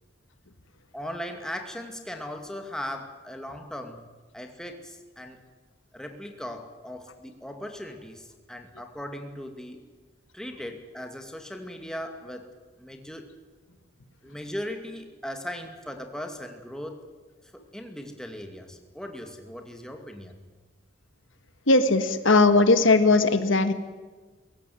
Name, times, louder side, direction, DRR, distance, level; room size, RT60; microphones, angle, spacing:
voice 1, 0.9-4.1 4.3-5.4 5.9-9.8 10.3-12.5 12.8-13.3 14.2-17.0 17.5-20.4, equal, 5° left, 4 dB, 2.3 m, -38 dB
voice 2, 21.7-23.7, left 3 dB, 75° left, 10 dB, 1.6 m, -19 dB
22.5 x 17.5 x 9.5 m, 1.3 s
head